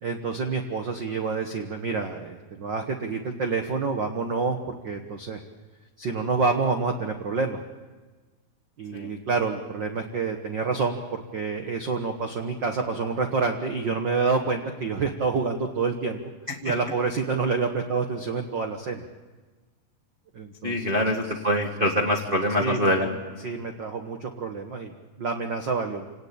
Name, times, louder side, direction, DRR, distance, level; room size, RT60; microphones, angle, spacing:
voice 1, 0.0-5.4 6.0-7.6 8.8-16.2 16.6-19.0 20.3-21.0 22.6-23.1 23.4-26.1, right 4 dB, 60° right, 5 dB, 1.2 m, -28 dB
voice 2, 20.6-23.5, equal, 35° right, 1 dB, 0.9 m, -25 dB
27.5 x 18.5 x 8.7 m, 1.3 s
omnidirectional pair, 4.0 m